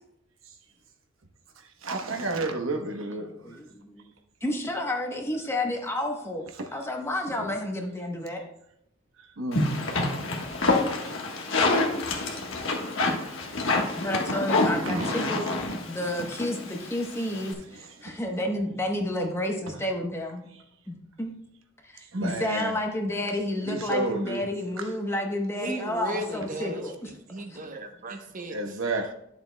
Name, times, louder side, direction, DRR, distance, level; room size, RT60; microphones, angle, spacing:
voice 1, 1.6-3.6 6.6-6.7 7.4-7.5 9.2-9.7 10.4-10.5 13.3-13.4 14.7-15.6 17.7-18.2 22.1-22.8 23.7-24.5 24.8-24.9 28.5-29.1, right 2 dB, 75° right, 0.9 m, -32 dB
voice 2, 3.2-4.1 4.4-6.4 6.7-8.4 14.0-15.5 15.9-20.5 20.9-21.3 21.8-27.1 27.5-27.7, left 1 dB, 15° left, 0.9 m, -30 dB
sound 1, 9.5-17.5, left 2 dB, 75° left, 1.3 m, -27 dB
voice 3, 25.6-28.8, right 1 dB, 40° right, 0.8 m, -36 dB
11.0 x 7.1 x 2.2 m
head